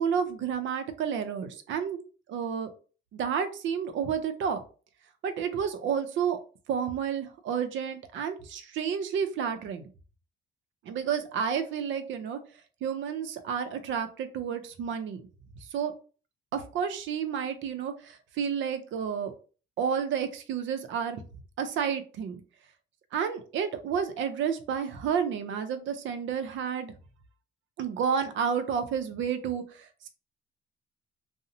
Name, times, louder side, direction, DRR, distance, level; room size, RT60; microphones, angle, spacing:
voice 1, 0.0-2.0 2.3-2.7 3.1-4.6 5.2-6.4 6.7-9.8 10.8-12.4 12.8-15.2 15.7-15.9 16.5-19.3 19.8-21.2 21.6-22.4 23.1-26.9 27.8-30.1, right 7 dB, 75° right, 9 dB, 0.5 m, -30 dB
2.6 x 2.0 x 2.6 m, 0.37 s
cardioid pair, 90°, 20 cm